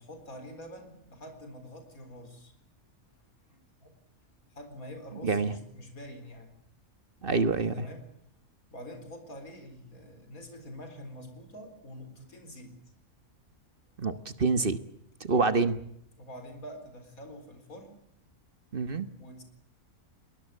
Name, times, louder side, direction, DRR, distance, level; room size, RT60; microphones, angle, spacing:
voice 1, 0.0-2.5 3.4-3.9 4.5-6.5 7.7-8.1 8.7-12.8 15.3-15.6 16.2-18.0 19.2-19.4, equal, 75° left, 7 dB, 4.6 m, -46 dB
voice 2, 5.2-5.5 7.2-7.9 14.0-14.8 15.2-15.7 18.7-19.1, right 4 dB, 40° right, 12 dB, 1.4 m, -26 dB
22.5 x 20.0 x 8.4 m, 0.72 s
omnidirectional pair, 1.5 m